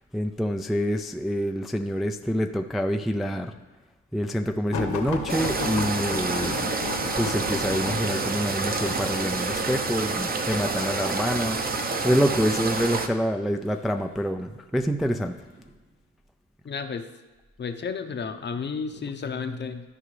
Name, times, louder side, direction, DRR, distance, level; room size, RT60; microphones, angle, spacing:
voice 1, 0.0-3.5 4.1-6.7 7.2-15.4, equal, ahead, 5 dB, 0.3 m, -27 dB
sound 1, 4.7-11.5 12.3-12.7 13.7-14.3 15.0-15.2 15.6-15.7, left 5 dB, 70° left, 1.3 m, -34 dB
sound 2, 5.3-13.1, right 3 dB, 30° right, 0.8 m, -28 dB
voice 2, 16.6-17.0 17.6-19.9, left 5 dB, 35° left, 8 dB, 0.7 m, -32 dB
13.5 x 4.9 x 3.2 m, 1.2 s
cardioid pair, 90°, 30 cm